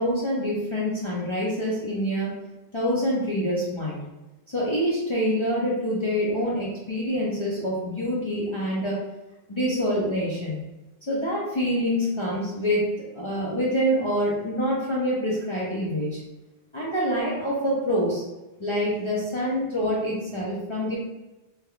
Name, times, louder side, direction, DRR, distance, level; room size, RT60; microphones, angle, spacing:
voice 1, 0.0-2.3 2.7-4.0 4.5-9.0 9.5-10.6 11.1-16.2 16.7-18.2 18.6-21.0, equal, 35° left, -7 dB, 0.7 m, -26 dB
3.4 x 2.9 x 2.3 m, 1.0 s
omnidirectional pair, 1.0 m